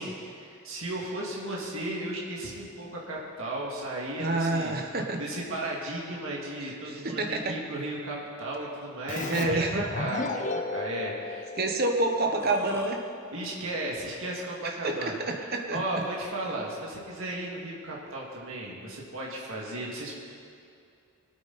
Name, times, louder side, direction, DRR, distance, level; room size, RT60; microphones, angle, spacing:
voice 1, 0.0-4.8 5.2-11.5 13.3-15.2 15.7-20.1, right 1 dB, 65° right, -4 dB, 2.3 m, -35 dB
voice 2, 4.2-5.2 6.9-7.6 9.3-9.8 11.6-13.0 14.6-15.8, right 2 dB, 45° right, 4 dB, 1.2 m, -28 dB
Keyboard (musical), 9.1-12.5, left 3 dB, 35° left, 0.6 m, -34 dB
Burping eructation, 12.1-12.9, left 1 dB, 10° left, 1.2 m, -38 dB
20.0 x 8.9 x 4.2 m, 2.5 s
head